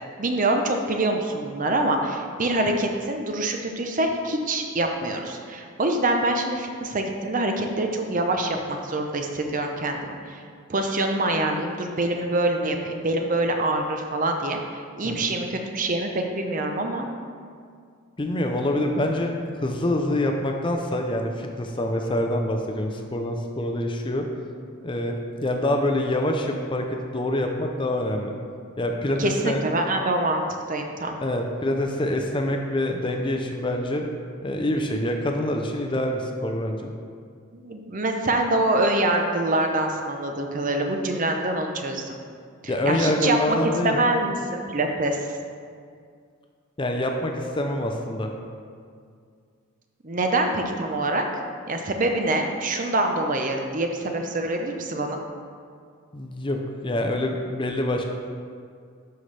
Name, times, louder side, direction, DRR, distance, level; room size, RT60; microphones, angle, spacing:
voice 1, 0.2-10.4 10.7-17.1 29.2-30.4 30.7-31.2 37.5-42.2 42.6-43.6 43.8-45.2 50.0-51.3 51.7-55.2, right 2 dB, 35° right, 4 dB, 0.6 m, -25 dB
voice 2, 18.2-19.3 19.6-24.2 24.8-28.3 28.8-29.6 31.2-34.0 34.4-36.9 42.7-44.1 46.8-48.3 56.1-58.0, left 1 dB, 20° left, 3 dB, 0.5 m, -26 dB
11.5 x 5.7 x 3.3 m, 2.2 s
head